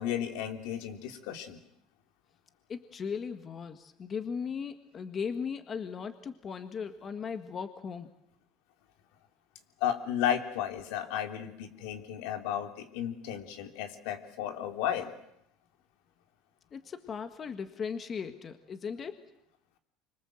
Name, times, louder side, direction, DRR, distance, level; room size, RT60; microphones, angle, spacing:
voice 1, 0.0-1.6 9.8-15.1, left 10 dB, 80° left, 5 dB, 3.3 m, -33 dB
voice 2, 2.7-8.1 16.7-19.2, left 6 dB, 30° left, 9 dB, 1.6 m, -37 dB
26.0 x 24.5 x 7.8 m, 0.75 s
cardioid pair, 135°, 0 cm